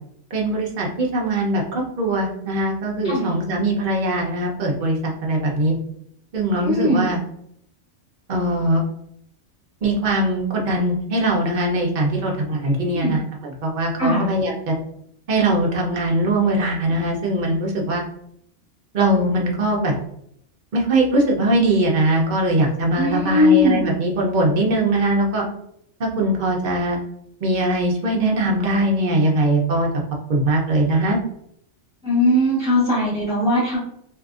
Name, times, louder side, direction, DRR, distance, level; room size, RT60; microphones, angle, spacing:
voice 1, 0.3-5.7 6.3-7.2 8.3-8.8 9.8-14.7 15.3-18.0 18.9-19.9 20.7-25.4 26.0-27.0 27.4-29.9 30.3-31.2, right 1 dB, 50° right, -1 dB, 0.7 m, -21 dB
voice 2, 6.6-7.1 12.5-13.2 14.0-14.3 23.0-23.8 32.0-33.8, left 1 dB, 5° right, -11 dB, 1.2 m, -19 dB
2.7 x 2.5 x 2.4 m, 0.71 s
omnidirectional pair, 1.3 m